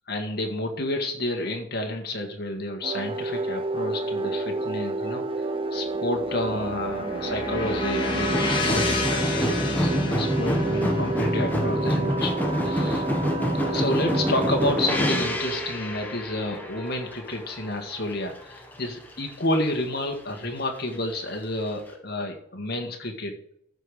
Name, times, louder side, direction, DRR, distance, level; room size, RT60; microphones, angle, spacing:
voice 1, 0.1-5.4 5.7-13.0 13.6-23.3, left 1 dB, 50° left, 3 dB, 1.7 m, -30 dB
sound 1, 2.8-14.9, right 3 dB, 25° right, 0.7 m, -30 dB
sound 2, 5.7-14.0, left 3 dB, 25° left, 2.0 m, -32 dB
sound 3, 8.1-18.1 18.4-19.2 19.5-19.6, equal, 10° left, 1.4 m, -27 dB
13.5 x 5.4 x 5.0 m, 0.72 s
head